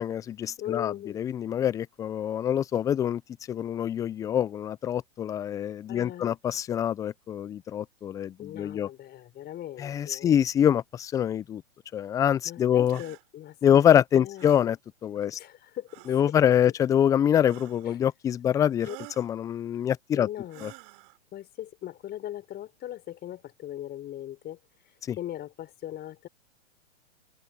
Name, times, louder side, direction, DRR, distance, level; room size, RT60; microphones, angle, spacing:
voice 1, 0.0-3.2 3.5-8.9 9.8-11.6 11.9-13.0 13.6-14.8 15.0-15.4 16.1-18.9 19.2-20.3 20.6-20.7 25.1-25.2, left 9 dB, 10° left, 0.4 m, -25 dB
voice 2, 0.6-1.2 5.9-6.4 8.4-10.4 12.4-14.7 15.2-16.0 16.7-16.8 17.8-18.0 18.9-19.0 20.1-20.7 21.3-26.3, left 12 dB, 30° left, 5.9 m, -39 dB
sound 1, 12.9-13.2 14.4-14.7 15.9-16.3 17.4-18.0 18.8-19.3 20.5-21.2, right 26 dB, 45° right, 3.0 m, -48 dB
hypercardioid pair, 120°, 35 cm